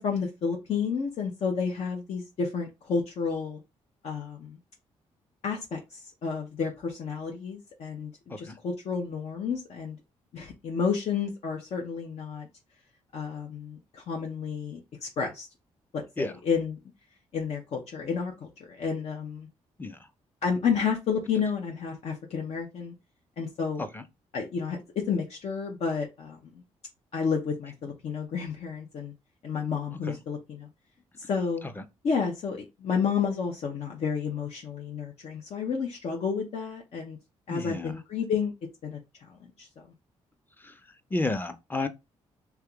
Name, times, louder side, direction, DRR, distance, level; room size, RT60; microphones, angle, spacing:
voice 1, 0.0-3.6 4.0-4.6 5.4-10.0 10.3-12.5 13.1-15.5 15.9-16.8 17.3-19.5 20.4-22.9 23.4-23.9 24.3-24.8 25.1-26.5 27.1-29.1 29.4-30.7 31.3-31.6 32.0-37.2 37.5-38.5 38.8-39.0 39.3-39.7, left 6 dB, 65° left, 0.7 m, -31 dB
voice 2, 37.5-37.9 40.6-40.7 41.1-41.9, left 2 dB, 15° left, 0.5 m, -31 dB
3.4 x 2.9 x 2.3 m
cardioid pair, 70°, 12 cm